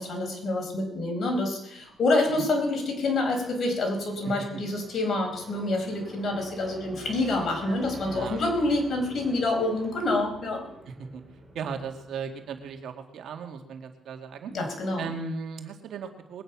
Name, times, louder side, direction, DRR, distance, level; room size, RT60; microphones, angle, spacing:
voice 1, 0.0-10.6 14.5-15.1, left 2 dB, 50° left, 2 dB, 4.6 m, -27 dB
sound 1, 1.8-12.7, right 1 dB, 15° right, 6.9 m, -48 dB
voice 2, 7.6-8.4 10.9-11.2 11.5-14.5 15.0-16.4, right 5 dB, 70° right, 5 dB, 1.9 m, -37 dB
21.0 x 9.2 x 5.9 m, 0.84 s
cardioid pair, 90°, 0 cm